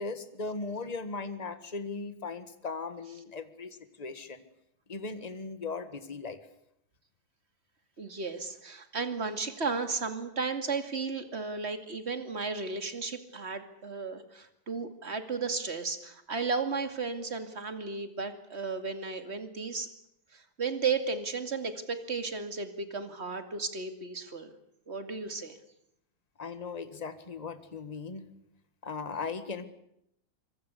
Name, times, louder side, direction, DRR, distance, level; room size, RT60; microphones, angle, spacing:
voice 1, 0.0-4.4 4.9-6.4 26.4-28.3 28.8-29.6, left 4 dB, 20° left, 11 dB, 1.7 m, -38 dB
voice 2, 8.0-19.9 20.3-24.5 24.9-25.6, right 4 dB, 30° right, 8 dB, 2.5 m, -34 dB
25.5 x 23.5 x 8.4 m, 0.78 s
omnidirectional pair, 2.3 m